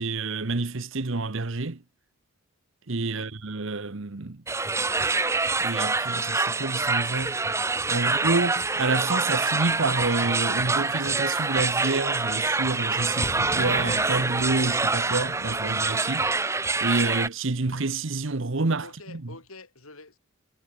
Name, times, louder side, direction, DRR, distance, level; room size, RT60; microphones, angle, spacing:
voice 1, 0.0-1.8 2.9-4.4 5.6-7.4 7.9-16.3 16.8-19.2, right 3 dB, 60° right, 1.0 m, -28 dB
sound 1, 4.5-17.3, right 3 dB, 15° right, 0.6 m, -26 dB
voice 2, 8.0-8.4 18.8-20.2, left 3 dB, 75° left, 7.7 m, -47 dB
sound 2, 10.7-15.9, left 1 dB, 30° left, 2.0 m, -42 dB
head